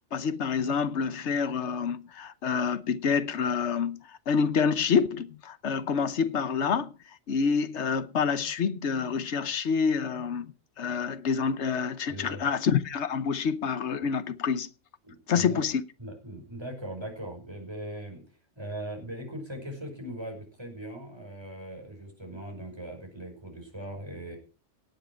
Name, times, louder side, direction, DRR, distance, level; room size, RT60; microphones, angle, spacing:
voice 1, 0.1-6.9 7.3-14.7 15.3-15.8, left 6 dB, 60° left, 1.2 m, -27 dB
voice 2, 12.1-12.4 15.0-15.6 16.0-18.3 18.6-24.4, right 1 dB, 20° right, 5.6 m, -40 dB
18.0 x 8.8 x 4.5 m
omnidirectional pair, 1.4 m